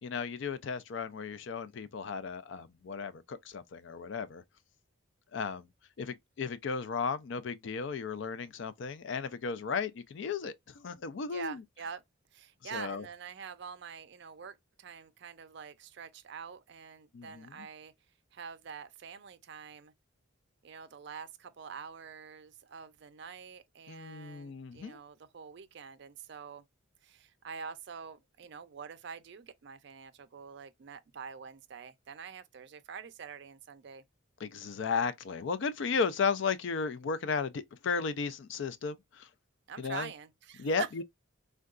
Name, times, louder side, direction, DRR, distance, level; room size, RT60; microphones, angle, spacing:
voice 1, 0.0-4.4 5.3-5.7 6.0-11.6 12.7-13.0 17.1-17.7 23.9-25.0 34.4-39.3 39.8-40.1 40.6-41.0, left 5 dB, 60° left, 0.4 m, -35 dB
voice 2, 11.2-12.0 12.3-17.9 18.3-19.9 20.6-26.6 27.0-34.0 39.7-41.0, right 6 dB, 55° right, 0.4 m, -45 dB
3.7 x 2.2 x 2.4 m
head